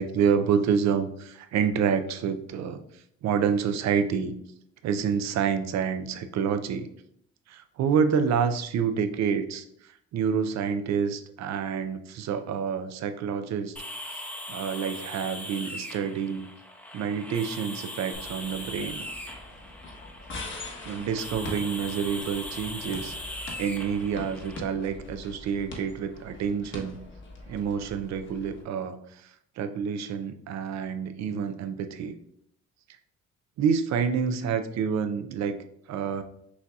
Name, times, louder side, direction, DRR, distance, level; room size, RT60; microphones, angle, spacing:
voice 1, 0.0-4.3 4.8-6.9 7.5-14.1 14.5-16.5 16.9-19.1 20.9-23.2 23.6-27.0 27.5-32.1 33.6-36.2, right 7 dB, 65° right, 10 dB, 0.5 m, -28 dB
sound 1, 13.8-24.6, left 1 dB, 5° left, 0.7 m, -40 dB
sound 2, 18.1-28.6, left 2 dB, 40° left, 1.0 m, -43 dB
6.2 x 2.7 x 2.3 m, 0.73 s
cardioid pair, 90°, 30 cm